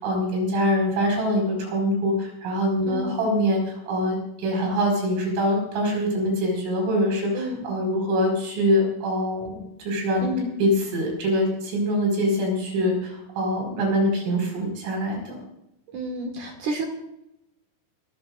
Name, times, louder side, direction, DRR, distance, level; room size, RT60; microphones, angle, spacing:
voice 1, 0.0-9.6 9.9-10.3 10.6-15.4, equal, 75° right, 1 dB, 7.7 m, -24 dB
voice 2, 2.9-3.2 7.3-7.7 10.2-10.5 15.9-16.9, right 1 dB, 55° right, 3 dB, 2.3 m, -30 dB
26.5 x 14.5 x 2.5 m, 0.85 s
omnidirectional pair, 5.8 m